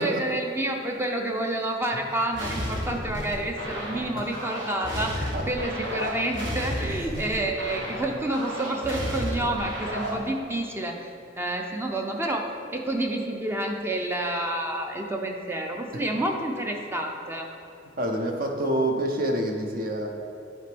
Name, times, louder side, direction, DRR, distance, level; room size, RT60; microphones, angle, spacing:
voice 1, 0.0-17.5, right 1 dB, 15° right, 2 dB, 0.5 m, -29 dB
sound 1, 2.3-10.3, equal, 70° right, 1.4 m, -32 dB
voice 2, 18.0-20.1, right 1 dB, 50° right, 3 dB, 0.7 m, -27 dB
9.5 x 4.3 x 3.4 m, 2.7 s
head